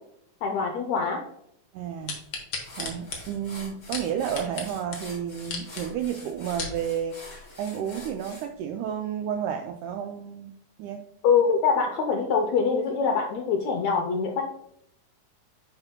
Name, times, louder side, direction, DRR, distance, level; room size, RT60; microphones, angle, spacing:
voice 1, 0.4-1.2 11.2-14.4, left 5 dB, 85° left, 1 dB, 1.5 m, -24 dB
voice 2, 1.7-2.2 2.7-11.0, right 8 dB, 85° right, 4 dB, 1.8 m, -32 dB
sound 1, 2.1-4.7 4.9-5.0 5.4-5.8 6.3-6.8 7.4-7.5, left 4 dB, 55° left, 1.6 m, -34 dB
sound 2, 2.1-2.2 2.6-8.5, left 2 dB, 15° left, 2.7 m, -45 dB
10.5 x 5.6 x 2.2 m, 0.74 s
omnidirectional pair, 4.1 m